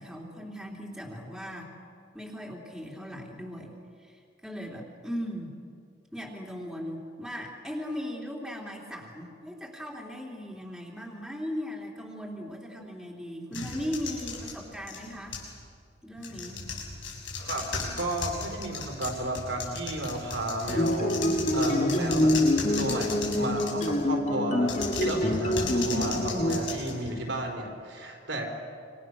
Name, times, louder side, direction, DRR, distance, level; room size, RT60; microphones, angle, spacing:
voice 1, 0.0-1.7 2.1-5.6 6.1-15.4 16.0-16.7, equal, 5° right, -2 dB, 3.3 m, -38 dB
sound 1, 13.5-15.6 16.2-24.1 24.6-27.5, left 4 dB, 85° left, 6.2 m, -37 dB
voice 2, 17.5-22.4 22.8-28.5, right 1 dB, 75° right, 1 dB, 4.6 m, -33 dB
sound 2, 20.7-26.6, left 1 dB, 40° left, 2.3 m, -26 dB
27.0 x 26.5 x 6.5 m, 2.3 s
head